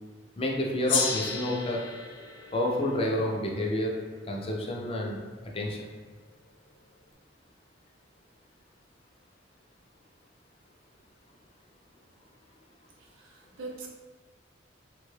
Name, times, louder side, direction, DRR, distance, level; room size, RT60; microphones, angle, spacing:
voice 1, 0.4-1.8 2.5-4.0 4.3-5.2 5.5-5.9, left 1 dB, 30° left, -1 dB, 0.4 m, -29 dB
Gong, 0.9-5.6, left 5 dB, 90° left, 0.5 m, -35 dB
voice 2, 13.0-13.9, right 3 dB, 85° right, 0 dB, 0.6 m, -42 dB
3.4 x 2.2 x 3.2 m, 1.4 s
head